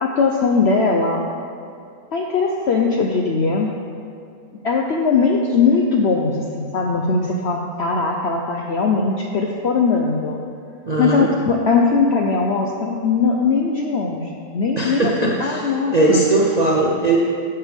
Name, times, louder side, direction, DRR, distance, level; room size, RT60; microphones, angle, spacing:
voice 1, 0.0-1.2 2.1-3.7 4.6-10.4 11.0-15.1 15.4-16.2, left 4 dB, 65° left, 0 dB, 0.6 m, -20 dB
voice 2, 10.9-11.3 14.8-17.2, right 2 dB, 45° right, -3 dB, 0.5 m, -19 dB
11.5 x 6.8 x 3.4 m, 2.5 s
omnidirectional pair, 1.7 m